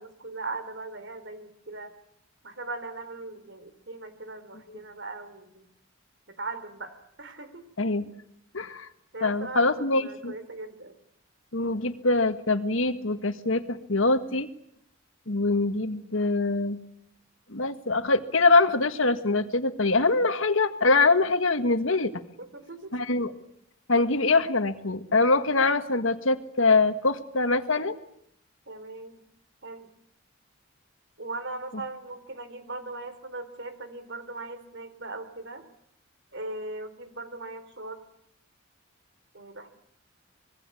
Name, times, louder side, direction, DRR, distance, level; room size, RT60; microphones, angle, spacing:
voice 1, 0.0-1.9 2.4-5.7 6.3-7.6 9.1-11.0 22.4-22.9 28.7-29.2 29.6-29.9 31.2-35.6 36.3-38.0 39.3-39.7, right 2 dB, 60° right, 11 dB, 3.7 m, -39 dB
voice 2, 7.8-8.1 8.5-8.9 9.2-10.3 11.5-14.5 15.3-16.8 17.5-22.1 22.9-23.3 23.9-28.0, left 3 dB, 75° left, 8 dB, 1.7 m, -24 dB
26.0 x 21.5 x 8.5 m, 0.73 s
head